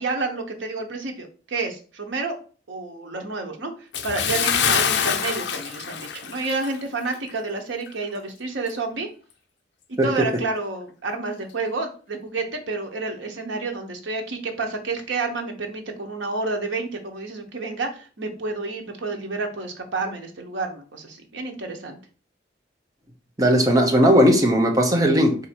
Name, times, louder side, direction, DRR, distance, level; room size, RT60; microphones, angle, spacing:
voice 1, 0.0-2.3 2.7-3.7 4.0-9.1 9.9-22.0, right 3 dB, 90° right, 0.9 m, -29 dB
Bathtub (filling or washing) / Splash splatter, 3.9-6.8 7.1-7.3 7.9-8.0, left 7 dB, 70° left, 0.5 m, -25 dB
voice 2, 23.4-25.4, equal, 20° right, 0.7 m, -17 dB
4.1 x 2.6 x 4.3 m
head